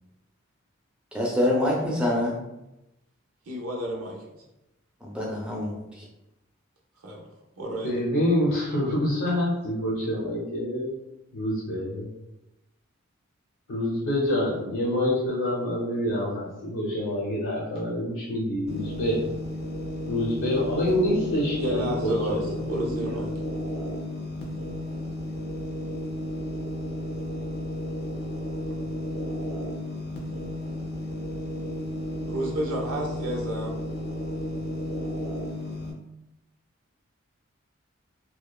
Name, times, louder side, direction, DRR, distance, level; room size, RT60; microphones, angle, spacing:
voice 1, 1.1-2.4 5.0-6.1, left 1 dB, 5° right, -3 dB, 0.4 m, -26 dB
voice 2, 3.5-4.4 7.0-7.2 7.6-8.0 21.6-23.3 32.3-33.7, right 1 dB, 85° right, -2 dB, 0.6 m, -31 dB
voice 3, 7.8-10.9 11.3-12.1 13.7-19.2 20.1-23.2, left 1 dB, 90° left, -7 dB, 0.6 m, -27 dB
sound 1, 18.7-35.9, left 1 dB, 45° left, 0.5 m, -33 dB
2.8 x 2.1 x 2.3 m, 0.93 s
head